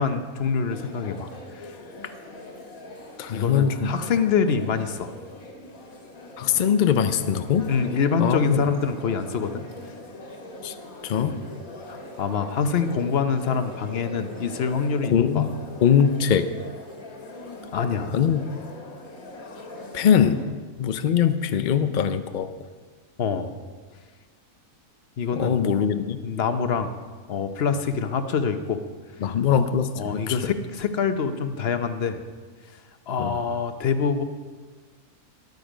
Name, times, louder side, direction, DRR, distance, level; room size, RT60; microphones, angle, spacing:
voice 1, 0.0-1.7 2.0-2.1 3.3-5.1 7.7-9.7 11.1-11.4 11.9-15.5 17.7-18.2 23.2-23.5 25.2-25.7 26.2-26.9 27.3-28.8 29.2-29.3 29.9-32.2 33.1-34.2, left 6 dB, 50° left, 9 dB, 0.9 m, -25 dB
sound 1, 0.7-20.4, left 2 dB, 65° left, 2.1 m, -42 dB
voice 2, 3.2-3.9 6.4-7.7 8.2-8.6 10.6-10.7 11.0-11.4 15.1-15.5 15.8-16.5 18.1-18.4 19.9-20.4 20.8-22.5 25.4-26.2 29.2-30.4 33.2-33.3, left 8 dB, 90° left, 10 dB, 0.4 m, -22 dB
13.5 x 11.0 x 5.1 m, 1.5 s
omnidirectional pair, 1.6 m